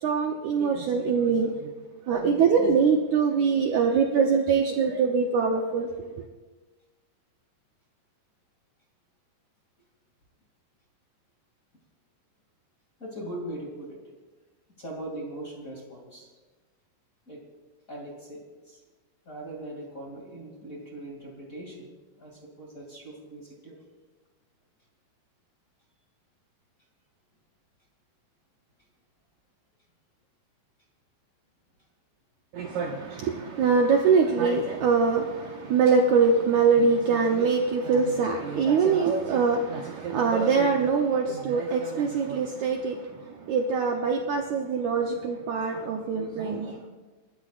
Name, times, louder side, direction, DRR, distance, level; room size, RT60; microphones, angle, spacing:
voice 1, 0.0-1.7 2.1-6.0 32.5-46.9, right 5 dB, 85° right, 1.6 m, -23 dB
voice 2, 13.0-14.0 14.8-16.3 17.3-17.4 17.9-18.8 19.3-21.9 22.2-23.8, right 1 dB, 25° left, 2.2 m, -40 dB
29.0 x 14.5 x 2.5 m
omnidirectional pair, 4.5 m